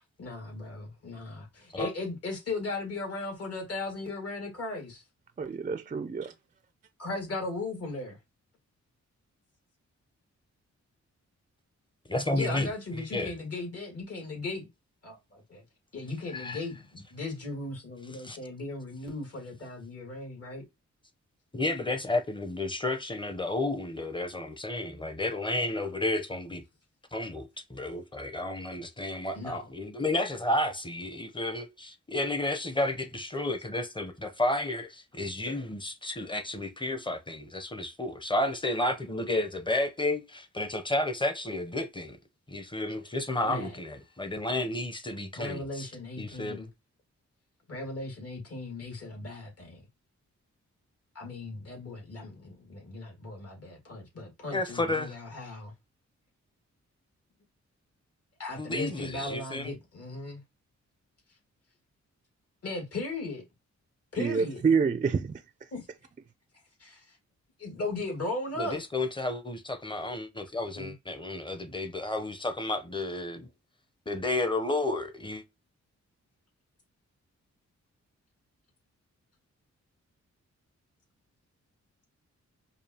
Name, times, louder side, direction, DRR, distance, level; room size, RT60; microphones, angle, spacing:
voice 1, 0.2-5.0 7.0-8.2 12.3-14.7 15.0-15.6 15.9-20.6 29.3-29.7 35.4-35.5 43.4-43.8 45.4-46.7 47.7-49.8 51.2-55.7 58.4-60.4 62.6-63.4 64.1-64.6 65.7-65.9 66.8-67.2 67.6-68.8 70.7-70.9, left 2 dB, 55° left, 1.9 m, -37 dB
voice 2, 5.4-6.3 64.2-65.4, right 5 dB, 30° right, 0.4 m, -27 dB
voice 3, 12.1-13.3 16.3-16.6 18.2-18.4 21.5-26.6 27.1-42.2 42.5-45.9 46.2-46.7 54.5-55.2 58.6-59.7 68.6-73.5 74.1-75.4, left 2 dB, 15° left, 0.7 m, -32 dB
5.1 x 2.3 x 2.8 m
cardioid pair, 80°, 29 cm